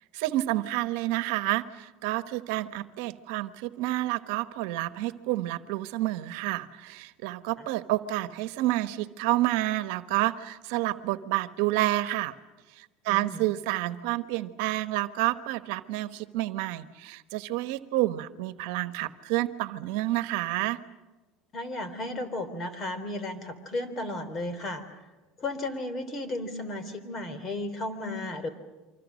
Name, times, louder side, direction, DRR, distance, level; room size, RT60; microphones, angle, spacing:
voice 1, 0.1-12.3 12.7-20.8, right 16 dB, 75° right, 12 dB, 1.1 m, -29 dB
voice 2, 13.1-13.4 21.5-24.8 25.4-28.5, left 2 dB, 35° left, 12 dB, 3.4 m, -34 dB
29.0 x 25.0 x 6.4 m, 1.1 s
supercardioid pair, 120°, 0 cm